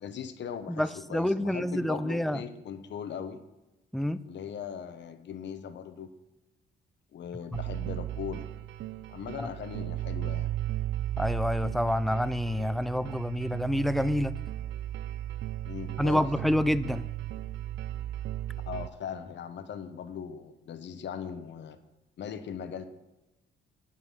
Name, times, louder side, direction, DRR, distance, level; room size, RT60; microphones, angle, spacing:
voice 1, 0.0-3.4 4.2-6.1 7.1-8.5 9.1-10.5 15.6-16.3 18.7-21.8 22.2-22.8, left 7 dB, 65° left, 10 dB, 1.0 m, -39 dB
voice 2, 0.7-2.4 3.9-4.2 7.5-7.6 9.4-9.5 11.2-14.3 16.0-17.0, equal, ahead, 15 dB, 0.4 m, -28 dB
sound 1, 7.5-18.9, right 13 dB, 70° right, 0.5 m, -35 dB
8.8 x 7.6 x 5.6 m, 1.0 s
cardioid pair, 90°, 20 cm